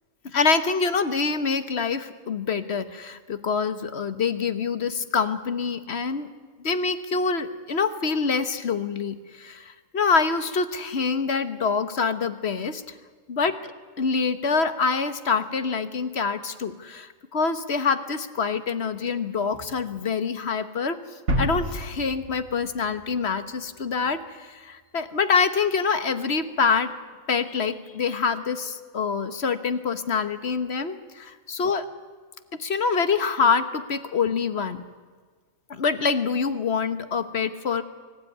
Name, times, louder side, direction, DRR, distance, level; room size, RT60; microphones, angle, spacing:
voice 1, 0.2-6.3 6.6-12.8 13.3-13.7 14.0-21.0 21.4-26.9 27.3-31.9 32.6-34.8 35.7-37.8, left 5 dB, 55° left, 11 dB, 1.4 m, -25 dB
sound 1, 21.3-24.0, equal, 80° right, 2.7 m, -30 dB
24.5 x 15.5 x 9.4 m, 1.5 s
omnidirectional pair, 1.4 m